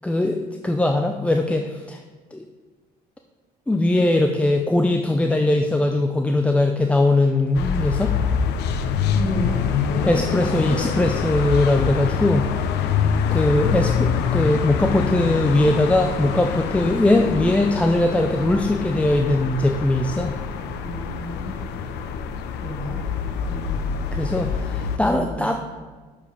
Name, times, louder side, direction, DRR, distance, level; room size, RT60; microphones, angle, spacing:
voice 1, 0.0-2.0 2.3-2.4 3.7-8.1 10.1-12.5 13.3-20.3 24.1-25.5, left 2 dB, 5° left, 4 dB, 0.4 m, -20 dB
sound 1, 7.5-25.0, left 7 dB, 80° left, 0.6 m, -25 dB
voice 2, 9.1-9.6 9.9-10.8 20.8-21.6 22.6-23.0 23.5-23.9 25.0-25.5, equal, 25° left, -2 dB, 2.2 m, -31 dB
6.7 x 4.9 x 5.2 m, 1.4 s
cardioid pair, 110°, 17 cm